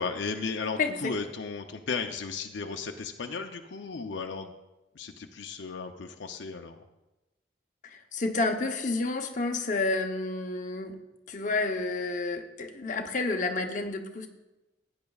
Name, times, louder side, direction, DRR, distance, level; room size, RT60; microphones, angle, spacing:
voice 1, 0.0-4.5 5.0-6.8, left 4 dB, 70° left, 5 dB, 0.6 m, -35 dB
voice 2, 7.8-11.0 11.3-14.3, left 3 dB, 40° left, 3 dB, 0.8 m, -30 dB
16.0 x 9.5 x 2.4 m, 1.0 s
head